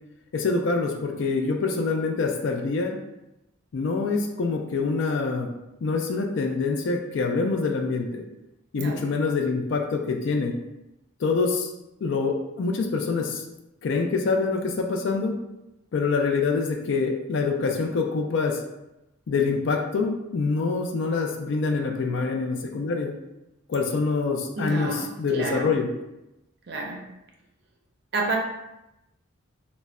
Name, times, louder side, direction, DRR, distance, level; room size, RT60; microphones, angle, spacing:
voice 1, 0.3-3.0 3.7-5.5 5.8-8.2 8.7-10.5 11.2-11.7 12.0-13.4 13.8-15.4 15.9-18.6 19.3-23.1 23.7-25.9, left 4 dB, 65° left, 3 dB, 0.4 m, -25 dB
voice 2, 24.6-25.7 26.7-27.0 28.1-28.4, right 2 dB, 50° right, 0 dB, 0.5 m, -29 dB
2.1 x 2.1 x 3.5 m, 0.92 s
head